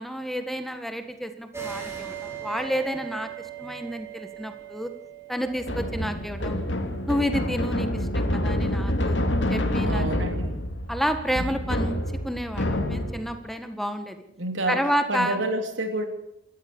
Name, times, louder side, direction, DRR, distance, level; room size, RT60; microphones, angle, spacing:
voice 1, 0.0-3.3 3.6-4.9 5.3-6.6 7.1-9.2 9.5-10.3 10.9-12.0 12.2-14.2 14.7-15.4, equal, ahead, 7 dB, 1.6 m, -30 dB
sound 1, 1.5-8.7, right 10 dB, 15° right, 6.4 m, -40 dB
sound 2, 5.6-13.4, left 1 dB, 65° left, 2.7 m, -27 dB
voice 2, 9.9-10.6 14.4-14.8 15.1-16.0, right 1 dB, 75° right, 5 dB, 3.5 m, -28 dB
27.5 x 14.0 x 7.1 m, 0.82 s
head